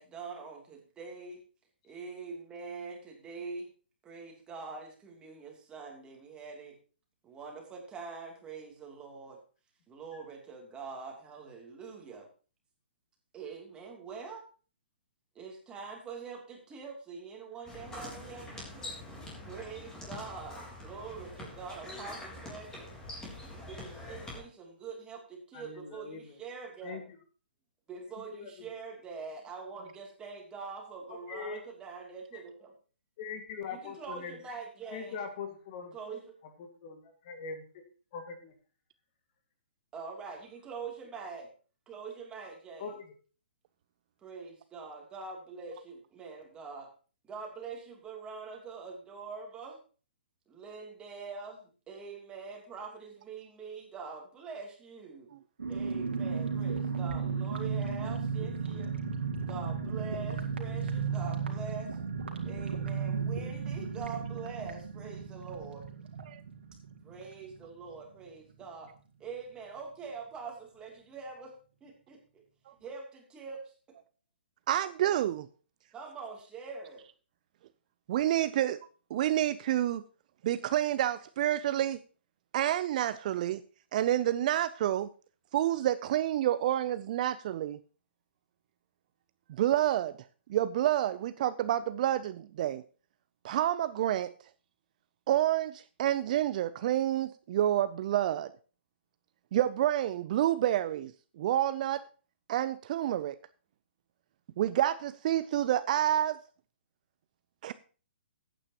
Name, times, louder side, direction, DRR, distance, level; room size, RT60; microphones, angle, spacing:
voice 1, 0.0-1.4 1.8-3.7 4.0-6.8 7.2-9.4 9.9-12.3 13.3-14.4 15.3-19.0 19.4-22.9 23.4-27.0 27.9-32.7 33.7-35.2 35.9-36.3 39.9-41.5 41.9-43.0 44.2-46.9 47.2-49.8 50.5-55.3 55.7-58.9 59.5-62.0 62.4-65.8 67.0-68.9 69.2-71.5 71.8-72.4 72.8-73.7 75.9-77.0, right 5 dB, 15° right, 2.8 m, -44 dB
sound 1, 17.6-24.4, left 1 dB, 10° left, 3.7 m, -44 dB
voice 2, 25.5-26.3 26.8-27.0 28.3-28.5 31.1-31.6 33.2-34.4 34.9-35.9 36.6-37.6 38.1-38.5 42.8-42.9, left 5 dB, 40° left, 1.9 m, -41 dB
sound 2, 55.6-68.0 68.2-68.3 68.6-68.9, right 5 dB, 80° right, 2.3 m, -35 dB
voice 3, 74.7-75.5 78.1-78.8 79.1-80.0 80.4-82.0 82.5-83.6 83.9-85.1 85.5-87.8 89.6-90.1 90.5-92.8 93.4-94.3 95.3-98.5 99.5-101.1 101.4-102.0 102.5-103.4 104.6-106.4 107.6-107.7, right 12 dB, 45° right, 0.5 m, -28 dB
14.5 x 9.0 x 2.9 m
hypercardioid pair, 140°, 6 cm